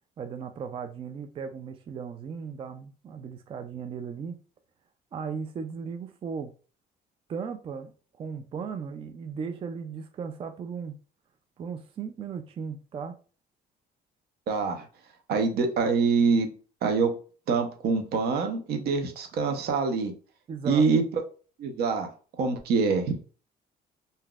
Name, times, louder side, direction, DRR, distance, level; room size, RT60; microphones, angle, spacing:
voice 1, 0.2-4.4 5.1-6.5 7.3-7.9 8.2-10.9 11.6-13.2 20.5-20.9, right 6 dB, 35° right, 0.3 m, -36 dB
voice 2, 14.5-14.9 15.3-16.5 16.8-17.1 17.5-20.1 20.6-21.0 21.6-22.1 22.4-23.1, right 4 dB, 70° right, 0.8 m, -25 dB
3.8 x 2.7 x 2.3 m
cardioid pair, 110°, 17 cm